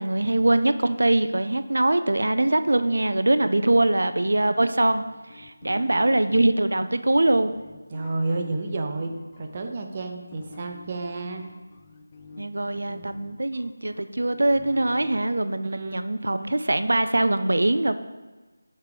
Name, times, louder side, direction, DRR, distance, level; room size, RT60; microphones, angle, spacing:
voice 1, 0.0-5.0 5.3-7.5 12.4-17.9, right 2 dB, 80° right, 11 dB, 0.4 m, -22 dB
sound 1, 4.9-9.6 10.3-15.2, left 4 dB, 25° left, 0.4 m, -46 dB
voice 2, 7.9-11.4 15.6-16.0, right 2 dB, 25° right, 4 dB, 0.6 m, -31 dB
8.0 x 3.7 x 4.9 m, 1.2 s
figure-of-eight pair, 175°, 0 cm